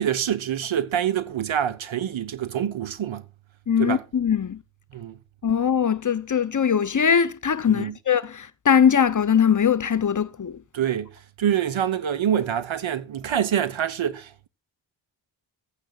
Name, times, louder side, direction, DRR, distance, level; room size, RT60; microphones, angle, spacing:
voice 1, 0.0-3.2 3.8-4.0 4.9-5.2 7.7-7.9 10.7-14.5, right 9 dB, 65° right, 1.1 m, -26 dB
voice 2, 3.7-4.6 5.4-10.6, left 7 dB, 40° left, 0.7 m, -21 dB
15.0 x 9.2 x 2.4 m
cardioid pair, 55°, 50 cm